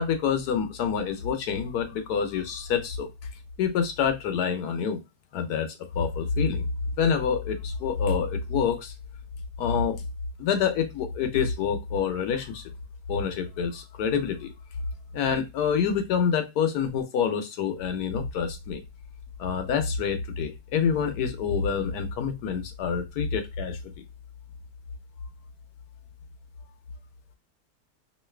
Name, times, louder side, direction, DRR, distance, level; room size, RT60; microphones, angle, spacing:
voice 1, 0.0-3.1 3.6-5.0 5.3-6.6 7.0-8.9 9.6-10.0 10.4-12.6 13.1-14.5 15.1-18.8 19.4-23.8, left 6 dB, 70° left, 1.1 m, -27 dB
3.1 x 2.6 x 3.1 m
omnidirectional pair, 1.8 m